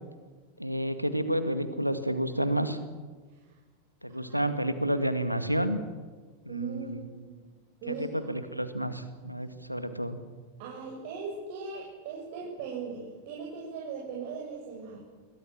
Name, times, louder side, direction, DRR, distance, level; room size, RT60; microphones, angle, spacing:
voice 1, 0.6-2.8 4.0-5.8 6.5-7.1 7.9-10.2, equal, 90° right, 10 dB, 2.0 m, -30 dB
voice 2, 6.5-7.4 7.8-8.2 10.6-15.0, right 5 dB, 50° right, -3 dB, 7.1 m, -39 dB
28.5 x 22.5 x 7.5 m, 1.4 s
figure-of-eight pair, 90°, 0 cm